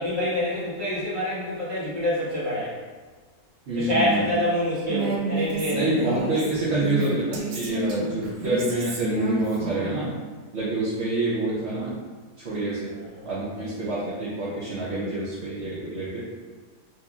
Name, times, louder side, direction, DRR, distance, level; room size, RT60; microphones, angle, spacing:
voice 1, 0.0-2.8 3.7-6.4 12.9-13.3, left 1 dB, 30° right, -9 dB, 1.2 m, -27 dB
voice 2, 3.7-4.2 5.7-10.1 10.5-12.0 12.4-12.9 13.3-16.2, right 2 dB, 55° right, -10 dB, 0.9 m, -27 dB
Female speech woman speaking, 4.9-10.0, right 2 dB, 75° right, 1.2 m, -30 dB
4.3 x 2.7 x 2.3 m, 1.4 s
omnidirectional pair, 1.8 m